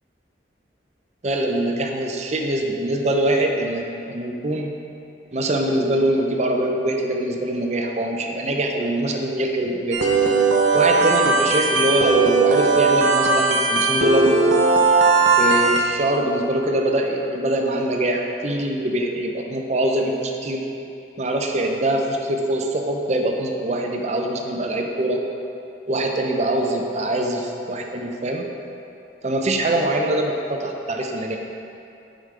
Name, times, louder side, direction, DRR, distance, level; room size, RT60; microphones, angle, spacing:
voice 1, 1.2-4.7 5.3-10.1 10.7-14.3 15.3-20.7 21.2-25.2 25.9-28.5 29.2-31.4, right 1 dB, 40° right, 2 dB, 0.6 m, -23 dB
sound 1, 9.9-15.8, right 4 dB, 80° right, 0.7 m, -18 dB
8.5 x 5.1 x 3.3 m, 2.7 s
head